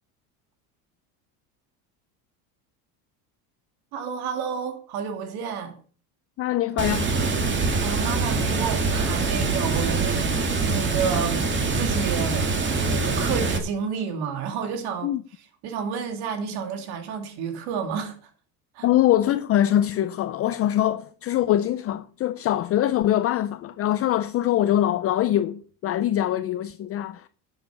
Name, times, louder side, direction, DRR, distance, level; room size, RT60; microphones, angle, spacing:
voice 1, 3.9-5.7 7.8-10.3 10.6-11.5 11.7-12.5 12.9-15.1 15.6-18.1 18.7-18.9, right 6 dB, 65° right, 2.8 m, -30 dB
voice 2, 6.4-7.1 15.0-15.2 18.8-27.3, left 12 dB, 35° left, 0.5 m, -23 dB
Water, 6.8-13.6, right 3 dB, 25° right, 2.1 m, -24 dB
12.0 x 7.8 x 5.8 m
cardioid pair, 135°, 42 cm